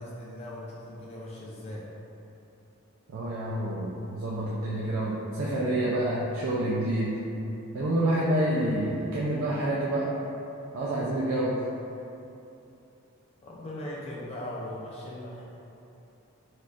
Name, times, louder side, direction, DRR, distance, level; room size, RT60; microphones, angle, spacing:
voice 1, 0.0-1.9 13.4-15.4, left 1 dB, 25° left, -5 dB, 0.3 m, -39 dB
voice 2, 3.1-7.2 7.7-10.1 10.7-11.6, right 1 dB, 65° right, -6 dB, 0.3 m, -28 dB
4.1 x 2.3 x 2.4 m, 2.8 s
head